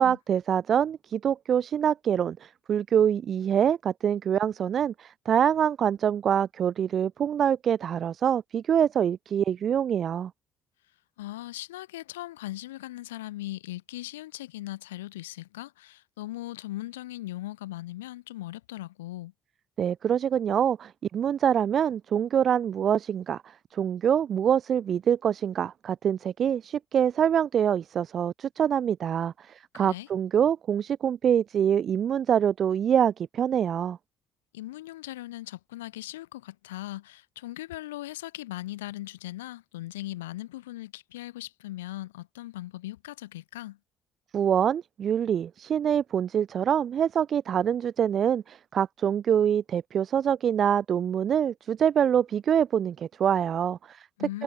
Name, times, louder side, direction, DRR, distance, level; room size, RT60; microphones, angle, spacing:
voice 1, 0.0-10.3 19.8-23.4 23.7-34.0 44.3-54.1 54.3-54.4, right 9 dB, 55° right, 2.6 m, -25 dB
voice 2, 11.2-19.3 29.7-30.1 34.5-43.8 54.2-54.4, left 16 dB, 85° left, 3.5 m, -39 dB
hypercardioid pair, 50°, 0 cm